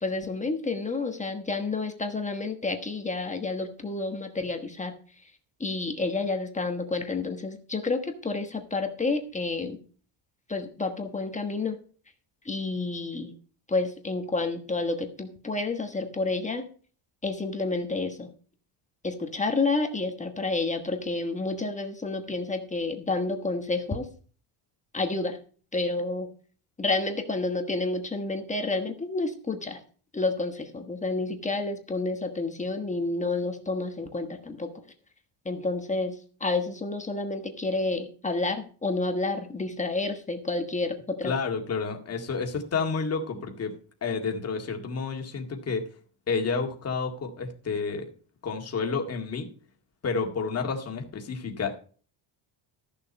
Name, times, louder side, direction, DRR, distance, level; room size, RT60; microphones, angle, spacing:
voice 1, 0.0-4.9 5.6-9.8 10.5-11.8 12.4-13.3 13.7-16.6 17.2-18.3 19.0-24.1 24.9-25.4 25.7-26.3 26.8-29.8 30.1-34.7 35.4-41.3, left 3 dB, 15° left, 5 dB, 1.2 m, -29 dB
voice 2, 41.2-43.8 44.0-45.8 46.3-48.1 48.4-49.5 50.0-51.7, left 5 dB, 30° left, 3 dB, 2.0 m, -30 dB
14.0 x 7.1 x 5.3 m, 0.42 s
cardioid pair, 165°, 50 cm